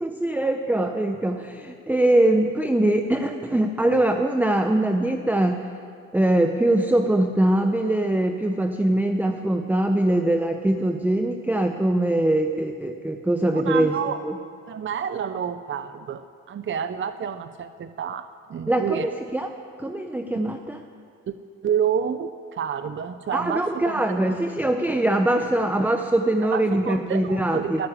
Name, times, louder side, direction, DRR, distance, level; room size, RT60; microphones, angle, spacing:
voice 1, 0.0-5.6 6.1-13.9 14.2-14.3 18.7-19.5 19.8-20.8 23.3-27.8, right 1 dB, 5° right, 5 dB, 0.8 m, -22 dB
voice 2, 13.5-14.2 14.7-19.1 21.3-21.4 21.6-24.0 24.3-24.4 26.5-27.9, right 8 dB, 40° right, 11 dB, 0.6 m, -29 dB
15.0 x 9.7 x 9.9 m, 2.2 s
cardioid pair, 90°, 30 cm